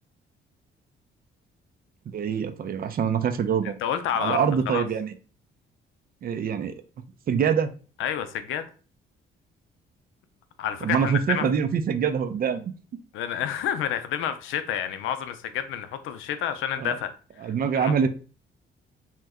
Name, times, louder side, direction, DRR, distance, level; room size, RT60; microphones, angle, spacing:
voice 1, 2.1-3.8 4.2-5.1 6.2-6.7 7.3-7.7 10.8-12.7 16.8-16.9 17.4-18.1, right 7 dB, 50° right, 0.5 m, -25 dB
voice 2, 3.8-4.8 8.0-8.7 10.6-11.5 13.1-17.1 17.4-17.9, left 9 dB, 85° left, 0.5 m, -29 dB
2.9 x 2.1 x 3.5 m
cardioid pair, 90°, 20 cm